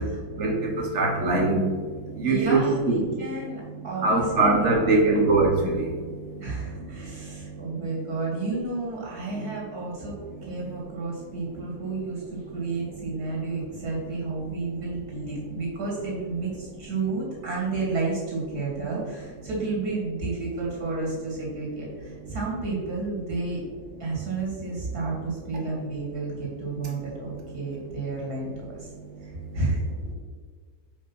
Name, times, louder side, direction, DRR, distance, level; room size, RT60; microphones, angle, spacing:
voice 1, 0.0-7.9 9.3-9.5 10.3-10.8 11.6-11.7 22.2-22.3 24.1-24.3 26.8-27.0, right 2 dB, 50° right, 0 dB, 1.6 m, -25 dB
voice 2, 2.2-5.1 6.4-23.6 24.0-28.9 29.2-29.8, right 3 dB, 75° right, -3 dB, 2.8 m, -31 dB
5.4 x 5.2 x 5.5 m, 1.5 s
omnidirectional pair, 1.7 m